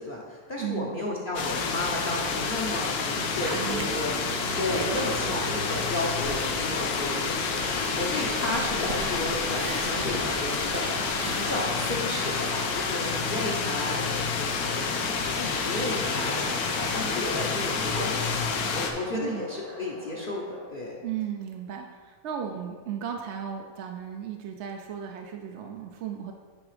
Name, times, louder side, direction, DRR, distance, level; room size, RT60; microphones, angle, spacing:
voice 1, 0.0-4.1 4.6-16.5 16.7-20.9, left 1 dB, 45° left, -3 dB, 0.8 m, -33 dB
voice 2, 0.6-1.0 3.4-4.0 4.4-4.6 19.1-19.5 21.0-26.3, right 8 dB, 65° right, 3 dB, 0.7 m, -35 dB
sound 1, 1.3-18.9, left 5 dB, 90° left, 1.2 m, -29 dB
sound 2, 3.1-11.5, right 5 dB, 80° right, 1.2 m, -39 dB
sound 3, 7.5-20.7, left 1 dB, 75° left, 2.7 m, -40 dB
9.6 x 3.5 x 4.9 m, 1.5 s
omnidirectional pair, 1.6 m